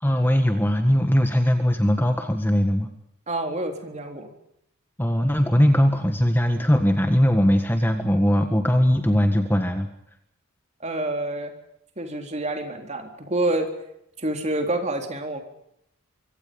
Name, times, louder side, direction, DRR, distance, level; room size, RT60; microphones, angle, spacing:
voice 1, 0.0-2.9 5.0-9.9, equal, 10° left, 5 dB, 1.7 m, -20 dB
voice 2, 3.3-4.3 10.8-11.5 12.0-13.7 14.2-15.4, right 2 dB, 30° right, 4 dB, 3.9 m, -27 dB
25.0 x 24.5 x 5.4 m, 0.78 s
head